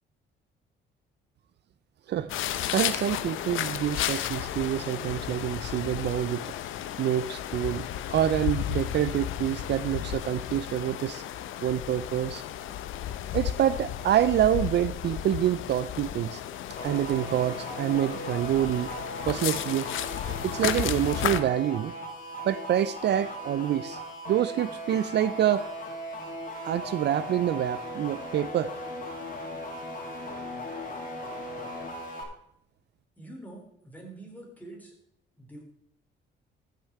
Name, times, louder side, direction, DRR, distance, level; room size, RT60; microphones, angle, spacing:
sound 1, 2.1-8.2, right 1 dB, 30° right, 5.0 m, -55 dB
sound 2, 2.3-21.4, left 11 dB, 85° left, 0.7 m, -33 dB
voice 1, 2.7-6.5 7.0-11.2 11.6-12.4 13.3-16.4 16.8-18.9 19.3-19.9 20.4-21.9 22.5-24.0 24.3-25.7 26.6-28.7, right 11 dB, 60° right, 15 dB, 0.5 m, -27 dB
sound 3, 16.8-32.2, equal, 45° left, 2.6 m, -38 dB
voice 2, 33.2-34.9 35.4-35.6, right 2 dB, 10° left, -1 dB, 4.0 m, -45 dB
14.5 x 6.8 x 4.6 m, 0.74 s
cardioid pair, 90°, 20 cm